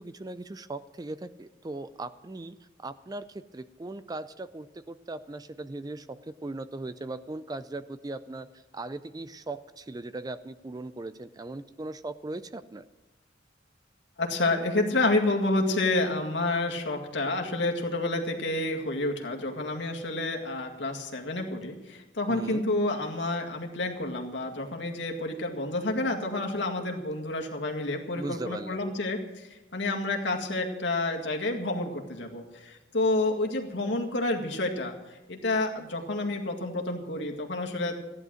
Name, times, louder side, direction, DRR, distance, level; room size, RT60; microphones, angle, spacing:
voice 1, 0.0-12.9 22.3-22.7 28.1-28.9, right 2 dB, 20° right, 13 dB, 0.4 m, -39 dB
voice 2, 14.2-38.0, left 2 dB, 65° left, 1 dB, 2.0 m, -29 dB
15.0 x 10.5 x 6.3 m, 1.1 s
head